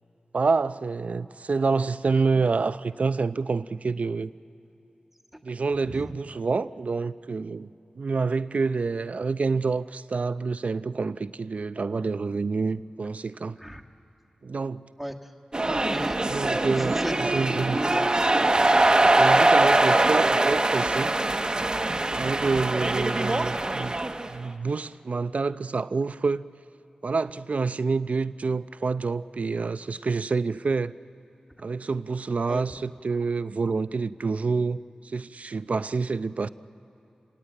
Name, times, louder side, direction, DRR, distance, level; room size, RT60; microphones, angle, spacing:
voice 1, 0.3-4.3 5.4-7.7 8.0-13.6 14.4-14.8 16.3-17.8 19.2-21.1 22.1-24.0 24.3-26.5 27.0-30.9 31.6-36.5, right 4 dB, 65° right, 0.6 m, -27 dB
voice 2, 5.8-6.1 12.6-12.7 13.6-13.8 15.0-15.3 15.9-16.2 16.7-17.1 17.7-18.1 18.5-19.1 19.9-20.1 32.5-32.8, equal, 5° right, 1.9 m, -37 dB
sound 1, 15.5-24.3, right 2 dB, 30° right, 1.1 m, -22 dB
29.5 x 17.5 x 9.1 m
cardioid pair, 50°, 3 cm